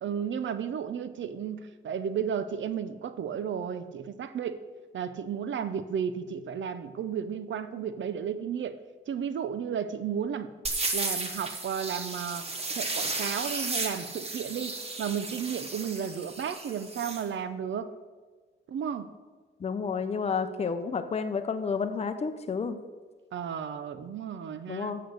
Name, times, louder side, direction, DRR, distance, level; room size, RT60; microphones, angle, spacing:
voice 1, 0.0-4.6 4.9-8.8 9.1-10.5 10.9-12.5 12.7-17.9 18.7-19.1 23.3-25.0, right 8 dB, 70° right, 12 dB, 0.6 m, -33 dB
sound 1, 10.7-17.2, right 3 dB, 30° right, 1.1 m, -34 dB
voice 2, 19.6-22.8 24.7-25.0, left 5 dB, 30° left, 9 dB, 0.6 m, -30 dB
8.1 x 6.7 x 6.5 m, 1.4 s
wide cardioid pair, 165°, 20 cm